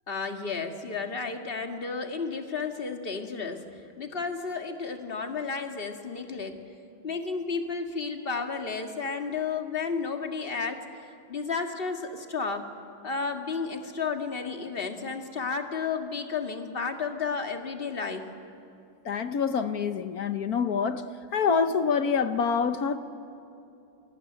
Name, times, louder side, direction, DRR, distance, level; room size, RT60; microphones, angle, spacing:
voice 1, 0.1-3.7 4.0-6.6 7.0-10.8 11.3-12.7 13.0-18.3, left 5 dB, 30° left, 1.8 m, -32 dB
voice 2, 19.0-21.0 21.3-23.0, left 6 dB, 55° left, 1.1 m, -26 dB
29.0 x 21.0 x 9.9 m
omnidirectional pair, 2.3 m